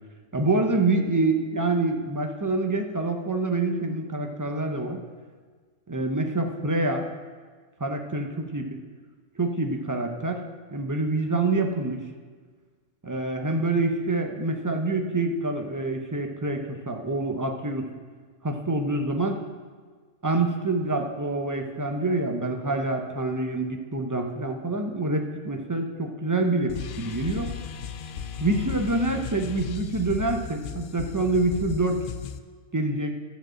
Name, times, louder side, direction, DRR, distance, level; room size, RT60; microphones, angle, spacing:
voice 1, 0.3-5.0 5.9-7.1 7.8-8.8 9.4-10.4 10.7-12.0 13.0-17.9 18.4-19.4 20.2-27.5 28.4-32.0 32.7-33.2, right 2 dB, 20° right, 3 dB, 0.5 m, -26 dB
sound 1, 26.7-32.4, left 8 dB, 65° left, 0.5 m, -36 dB
12.0 x 5.1 x 7.5 m, 1.5 s
omnidirectional pair, 1.3 m